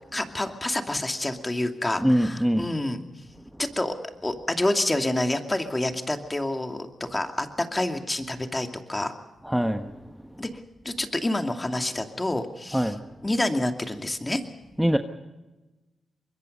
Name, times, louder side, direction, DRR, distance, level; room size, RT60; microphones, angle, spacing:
voice 1, 0.0-3.0 3.6-3.9 4.2-9.1 10.4-10.5 10.8-12.9 13.2-14.4, left 1 dB, 20° left, 5 dB, 2.6 m, -28 dB
voice 2, 2.0-2.7 9.4-9.9 12.7-13.0 14.8-15.0, equal, 5° right, 6 dB, 1.3 m, -23 dB
24.5 x 21.5 x 5.4 m, 1.1 s
supercardioid pair, 50°, 0 cm